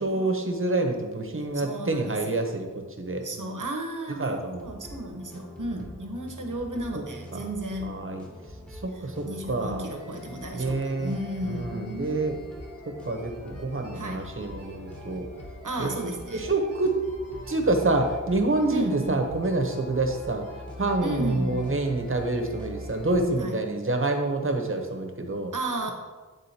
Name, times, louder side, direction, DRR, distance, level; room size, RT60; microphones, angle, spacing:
voice 1, 0.0-3.6 4.2-4.7 5.8-5.9 7.3-7.4 7.8-8.3 8.7-9.9 10.5-11.2 11.4-12.3 12.9-15.3 15.8-15.9 16.3-17.0 17.5-20.5 20.8-25.5, right 2 dB, 40° right, 4 dB, 0.8 m, -27 dB
voice 2, 1.5-2.4 3.2-8.0 8.9-12.1 13.9-14.2 15.6-16.4 18.7-19.2 21.0-21.7 23.4-23.6 25.5-25.9, right 1 dB, 70° right, 3 dB, 0.9 m, -34 dB
sound 1, 4.5-23.4, left 1 dB, 5° left, 1.0 m, -43 dB
sound 2, 9.9-23.1, left 1 dB, 50° left, 1.7 m, -48 dB
9.5 x 3.7 x 2.8 m, 1.4 s
wide cardioid pair, 55°, 32 cm